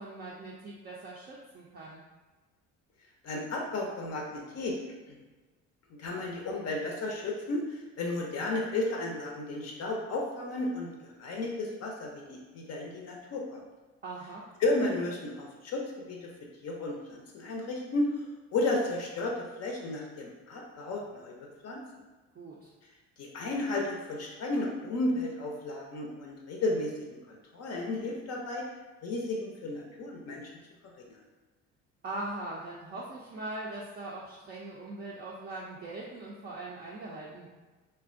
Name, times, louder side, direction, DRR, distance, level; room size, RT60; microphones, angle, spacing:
voice 1, 0.0-2.0 14.0-14.4 22.3-22.7 32.0-37.5, right 2 dB, 25° right, -5 dB, 0.4 m, -41 dB
voice 2, 3.2-4.8 5.1-5.2 6.0-13.6 14.6-15.8 16.1-16.3 16.6-18.1 18.5-21.3 21.6-21.8 23.2-26.9 27.3-28.6 29.0-30.4 31.0-31.2, left 2 dB, 45° left, -1 dB, 0.5 m, -33 dB
2.5 x 2.1 x 2.4 m, 1.2 s
hypercardioid pair, 65°, 37 cm